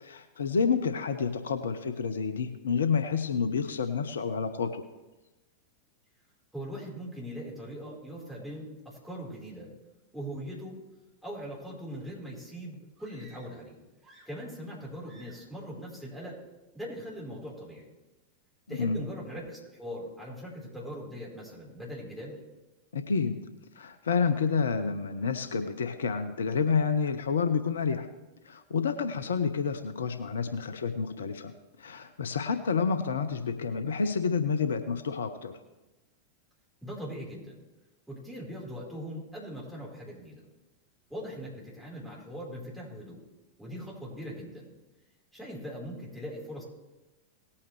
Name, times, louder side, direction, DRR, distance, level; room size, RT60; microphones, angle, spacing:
voice 1, 0.0-4.8 18.7-19.0 22.9-23.4 23.8-28.1 28.4-31.5 31.8-35.5, left 5 dB, 65° left, 10 dB, 0.6 m, -29 dB
voice 2, 6.5-9.7 10.1-10.8 11.2-13.8 14.2-16.4 16.7-17.9 18.7-22.4 36.8-37.6 38.1-40.4 41.1-43.2 43.6-44.7 45.3-46.6, equal, ahead, -6 dB, 4.2 m, -41 dB
sound 1, 13.0-13.7 14.0-14.7 15.0-15.6, right 2 dB, 25° right, 2.1 m, -58 dB
18.5 x 8.6 x 3.2 m, 1.1 s
figure-of-eight pair, 90°, 0 cm